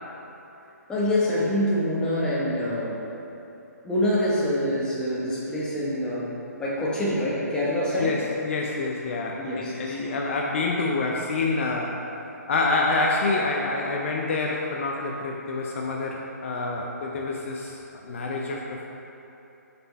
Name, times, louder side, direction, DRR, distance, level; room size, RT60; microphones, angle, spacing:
voice 1, 0.9-3.1 3.8-8.2 9.4-10.0, left 1 dB, 10° left, -7 dB, 1.1 m, -26 dB
voice 2, 8.0-12.0 12.5-18.9, left 3 dB, 45° left, -1 dB, 0.6 m, -27 dB
6.6 x 4.3 x 4.1 m, 2.9 s
figure-of-eight pair, 140°, 9 cm